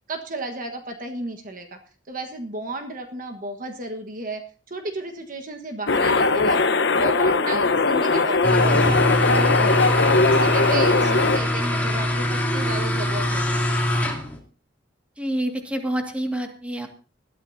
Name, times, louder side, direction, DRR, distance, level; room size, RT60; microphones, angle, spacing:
voice 1, 0.1-1.8 2.1-4.4 4.7-6.6 6.9-9.9 10.2-13.6, right 2 dB, 45° right, 4 dB, 1.4 m, -33 dB
sound 1, 5.9-11.4, left 3 dB, 65° left, 1.0 m, -20 dB
sound 2, 8.4-14.4, left 1 dB, 10° left, 2.8 m, -23 dB
voice 2, 15.2-16.9, right 1 dB, 5° right, 3 dB, 2.0 m, -27 dB
20.0 x 12.5 x 2.8 m, 0.38 s
head